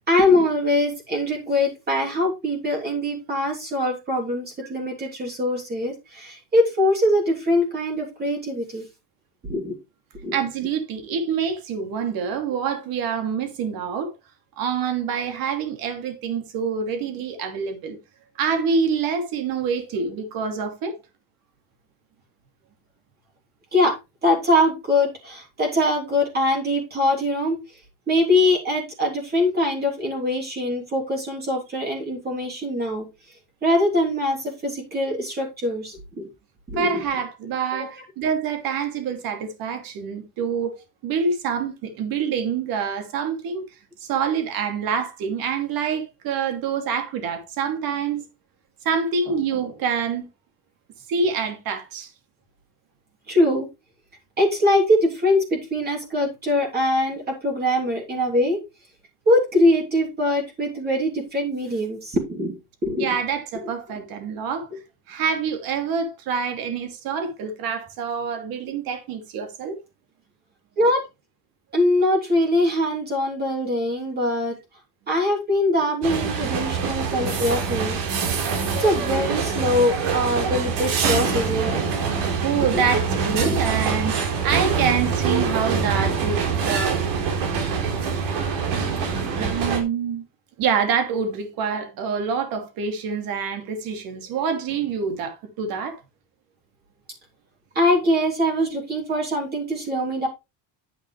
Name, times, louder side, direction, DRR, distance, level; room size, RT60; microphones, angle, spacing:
voice 1, 0.1-8.8 9.5-9.7 10.2-10.3 23.7-27.6 28.1-33.1 33.6-36.3 36.7-37.0 53.3-53.7 54.4-58.6 59.2-62.6 62.8-63.1 70.8-71.0 71.7-74.5 75.1-78.0 78.8-81.8 82.7-82.8 83.4-83.6 97.7-100.3, left 1 dB, 25° right, 3.3 m, -22 dB
voice 2, 10.3-14.1 14.6-18.0 18.4-21.0 36.7-40.8 41.0-43.6 44.0-48.2 48.8-50.3 51.1-52.1 63.0-64.7 65.1-69.8 82.4-87.0 89.4-90.2 90.6-96.0, right 6 dB, 60° right, 2.8 m, -26 dB
sound 1, 76.0-89.8, right 5 dB, 85° right, 4.3 m, -24 dB
9.7 x 8.2 x 3.3 m
cardioid pair, 160°, 39 cm